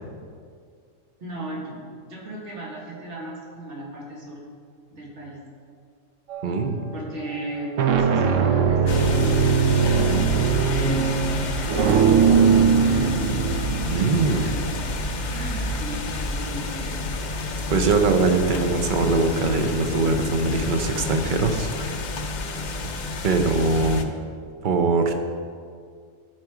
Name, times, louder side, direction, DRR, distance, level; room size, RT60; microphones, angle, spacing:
voice 1, 1.2-4.4 4.9-5.4 6.9-9.5 10.7-11.9 12.8-13.4 13.9-17.0 23.3-23.6, right 1 dB, 60° right, -4 dB, 2.2 m, -36 dB
sound 1, 6.3-6.7 7.5-16.2, right 6 dB, 80° right, 1.1 m, -21 dB
voice 2, 6.4-6.8 13.9-14.6 17.7-21.9 23.2-24.2 24.6-25.1, right 3 dB, 45° right, 6 dB, 0.8 m, -22 dB
sound 2, 8.9-24.0, left 2 dB, 50° left, 0.6 m, -29 dB
14.0 x 4.7 x 4.8 m, 2.2 s
omnidirectional pair, 1.3 m